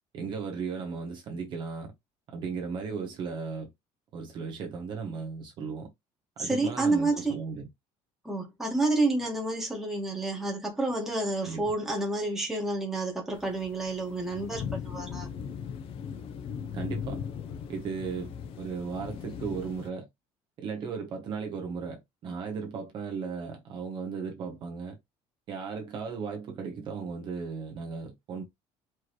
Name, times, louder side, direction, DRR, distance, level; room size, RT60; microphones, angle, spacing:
voice 1, 0.1-1.9 2.3-3.7 4.1-5.9 6.4-7.7 11.4-11.7 16.7-17.2 17.7-20.1 20.6-25.0 25.5-28.4, right 5 dB, 45° right, 1.0 m, -36 dB
voice 2, 6.4-7.4 8.2-15.3, right 2 dB, 5° right, 1.4 m, -29 dB
sound 1, 13.3-19.9, left 7 dB, 50° left, 0.7 m, -39 dB
4.6 x 3.2 x 3.0 m
cardioid pair, 180°, 12 cm